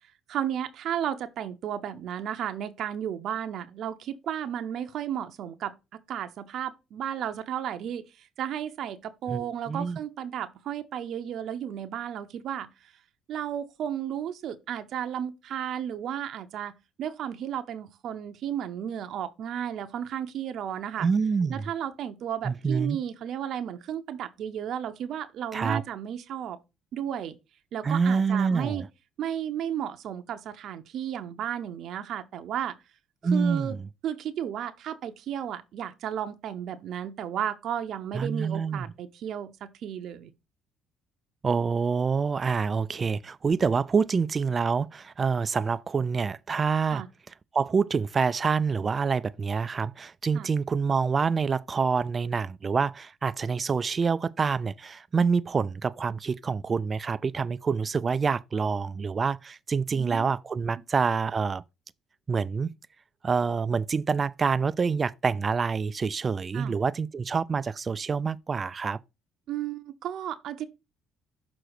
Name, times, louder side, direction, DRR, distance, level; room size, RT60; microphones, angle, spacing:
voice 1, 0.3-5.7 6.1-12.9 13.3-16.7 17.0-21.1 21.5-26.6 26.9-27.4 27.7-28.8 29.2-32.8 33.3-33.8 34.0-40.3 46.9-47.1 50.3-50.5 59.9-60.3 66.5-66.8 69.5-70.6, right 9 dB, 65° right, 0.7 m, -33 dB
voice 2, 9.3-10.0 21.0-21.6 22.4-23.0 25.5-25.8 27.8-28.9 33.2-33.9 38.1-38.9 41.4-47.0 47.5-61.6 62.3-62.7 63.2-69.0, right 5 dB, 35° right, 0.3 m, -26 dB
6.4 x 3.9 x 4.8 m
cardioid pair, 95°, 0 cm